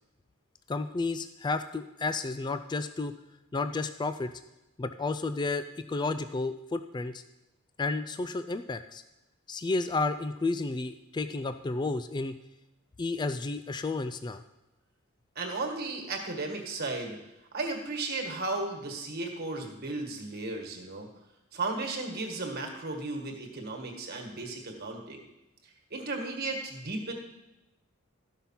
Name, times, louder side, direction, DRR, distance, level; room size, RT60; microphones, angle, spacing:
voice 1, 0.7-3.1 3.5-4.3 4.8-7.2 7.8-9.0 9.5-12.3 13.0-14.4, left 3 dB, 20° left, 10 dB, 0.3 m, -32 dB
voice 2, 15.4-17.2 17.5-21.1 21.5-25.2 25.9-27.1, right 3 dB, 45° right, 2 dB, 1.7 m, -35 dB
13.0 x 5.5 x 5.8 m, 0.96 s
head